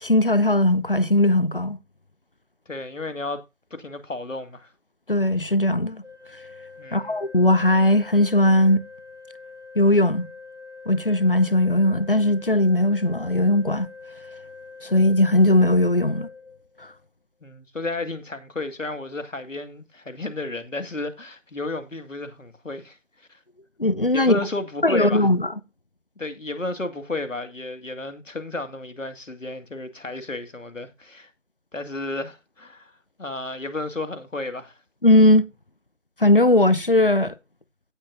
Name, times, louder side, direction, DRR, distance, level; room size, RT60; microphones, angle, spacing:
voice 1, 0.0-1.8 5.1-6.0 6.9-8.8 9.8-10.3 10.9-13.9 14.8-16.3 23.8-24.4 24.8-25.5 35.0-35.4 36.2-37.3, left 1 dB, 45° left, 0.7 m, -18 dB
voice 2, 2.7-3.4 3.7-4.7 6.8-7.2 17.4-23.4 24.1-25.3 26.2-31.3 31.7-32.9 33.2-34.8, left 2 dB, 80° left, 2.2 m, -32 dB
Organ, 6.0-17.1, left 4 dB, 70° right, 1.7 m, -44 dB
17.0 x 6.3 x 2.6 m
figure-of-eight pair, 175°, 38 cm